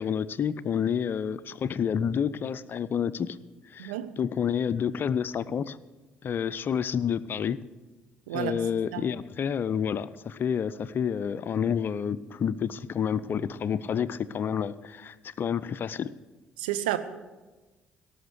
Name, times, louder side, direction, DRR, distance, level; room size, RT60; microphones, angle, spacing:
voice 1, 0.0-3.4 3.7-5.8 6.2-7.6 8.3-16.1, left 7 dB, 45° left, 17 dB, 0.5 m, -29 dB
voice 2, 3.8-4.1 8.3-8.6 8.9-9.0 16.6-17.0, right 14 dB, 75° right, 10 dB, 0.7 m, -30 dB
17.5 x 6.5 x 8.0 m, 1.2 s
figure-of-eight pair, 50°, 5 cm